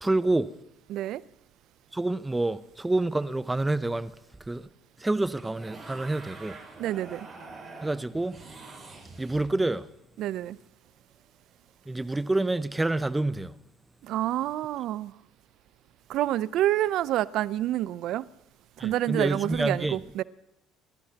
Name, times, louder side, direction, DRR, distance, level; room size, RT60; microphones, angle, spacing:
voice 1, 0.0-0.5 1.9-4.1 4.5-4.7 5.0-6.6 7.8-8.4 9.2-9.9 11.9-13.5 18.8-20.0, right 2 dB, 10° right, 0.7 m, -27 dB
voice 2, 0.9-1.2 6.8-7.3 10.2-10.6 14.0-15.1 16.1-18.2 18.8-20.2, right 13 dB, 65° right, 0.5 m, -28 dB
sound 1, 5.4-9.8 12.0-12.2, right 3 dB, 30° right, 6.4 m, -45 dB
29.5 x 14.5 x 2.9 m
supercardioid pair, 80°, 0 cm